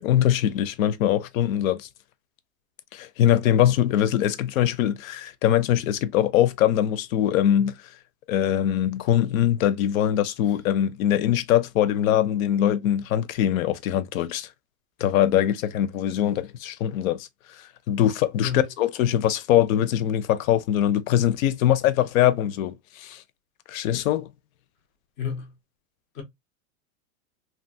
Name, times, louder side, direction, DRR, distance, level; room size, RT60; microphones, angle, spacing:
voice 1, 0.0-1.9 2.9-7.8 8.3-14.5 15.0-17.3 17.6-23.2 23.7-24.3, left 11 dB, 70° left, 0.6 m, -22 dB
voice 2, 25.2-25.5 26.1-26.2, left 6 dB, 20° left, 0.4 m, -30 dB
2.9 x 2.3 x 2.6 m
supercardioid pair, 160°, 43 cm